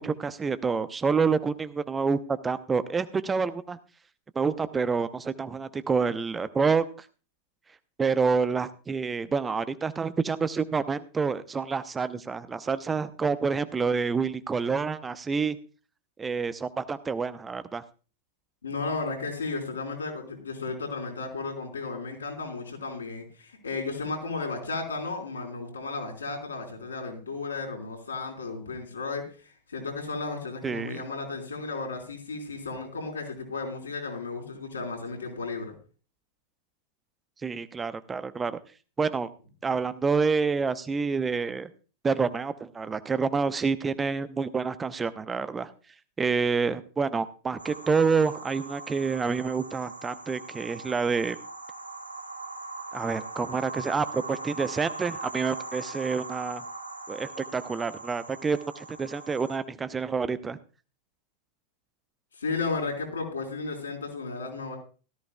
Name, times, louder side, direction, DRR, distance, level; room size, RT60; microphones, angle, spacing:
voice 1, 0.0-3.8 4.3-6.8 8.0-15.6 16.2-17.8 30.6-31.0 37.4-38.6 39.0-39.3 39.6-41.7 42.0-45.7 46.2-51.4 52.9-56.6 57.1-60.6, right 5 dB, 15° right, 13 dB, 0.7 m, -28 dB
voice 2, 18.6-35.7 62.4-64.8, left 3 dB, 75° left, 1 dB, 4.3 m, -34 dB
sound 1, 47.6-59.6, right 3 dB, 85° right, 1.2 m, -40 dB
17.0 x 14.0 x 2.3 m, 0.36 s
figure-of-eight pair, 90°, 0 cm